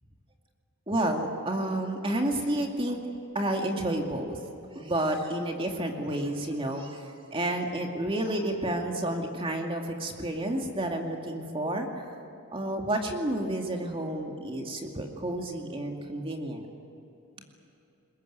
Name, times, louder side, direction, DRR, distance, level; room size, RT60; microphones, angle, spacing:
voice 1, 0.9-3.0 3.3-4.4 4.7-12.1 12.5-16.7, right 1 dB, 25° right, 2 dB, 2.4 m, -30 dB
22.0 x 21.5 x 9.3 m, 2.9 s
head